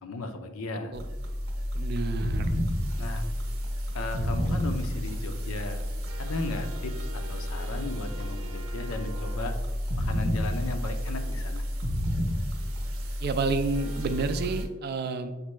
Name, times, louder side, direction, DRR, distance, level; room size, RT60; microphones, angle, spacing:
voice 1, 0.0-1.0 3.0-3.2 3.9-5.8 6.2-9.6 10.0-11.6, left 2 dB, 90° left, 7 dB, 0.5 m, -35 dB
sound 1, 0.9-14.7, equal, 90° right, 0.8 m, -31 dB
voice 2, 1.7-2.6 13.2-15.3, right 4 dB, 50° right, 9 dB, 0.3 m, -30 dB
6.5 x 2.2 x 3.0 m, 1.2 s
head